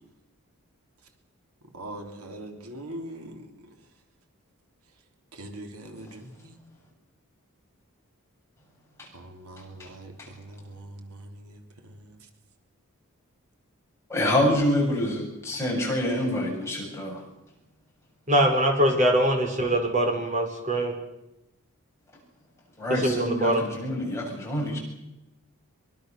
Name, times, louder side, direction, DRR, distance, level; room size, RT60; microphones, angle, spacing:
voice 1, 1.7-3.5 5.3-6.6 9.1-12.2, right 1 dB, 85° right, 4 dB, 3.7 m, -42 dB
voice 2, 14.1-17.2 22.8-24.8, left 1 dB, 10° left, -2 dB, 7.4 m, -26 dB
voice 3, 18.3-20.9 23.0-23.6, right 1 dB, 35° right, 3 dB, 5.1 m, -23 dB
24.5 x 24.0 x 6.9 m, 0.91 s
head